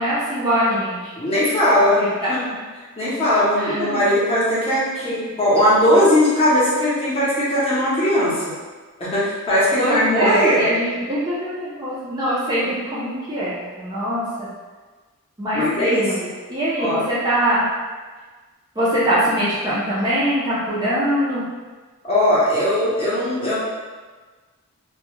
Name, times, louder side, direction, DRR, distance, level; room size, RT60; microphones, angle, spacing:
voice 1, 0.0-1.1 2.0-2.3 3.6-4.0 5.0-5.3 9.8-14.5 15.4-16.2 16.5-17.6 18.8-21.4, right 1 dB, 20° right, -10 dB, 0.4 m, -23 dB
voice 2, 1.2-2.5 3.0-8.5 9.0-10.6 15.5-16.3 16.8-17.0 22.0-23.6, left 1 dB, 25° left, -9 dB, 0.7 m, -19 dB
2.2 x 2.1 x 3.0 m, 1.4 s
head